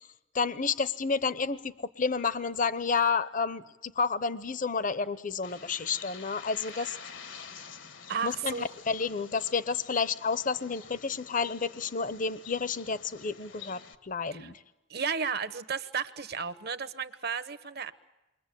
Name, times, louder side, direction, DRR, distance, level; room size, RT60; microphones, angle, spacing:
voice 1, 0.3-7.0 8.2-14.6, left 5 dB, 45° left, 15 dB, 0.9 m, -30 dB
Bird, 5.4-13.9, left 6 dB, 75° left, 1.6 m, -48 dB
voice 2, 8.1-8.7 14.3-14.5 14.9-17.9, right 6 dB, 55° right, 14 dB, 1.2 m, -33 dB
29.0 x 23.5 x 8.5 m, 0.99 s
head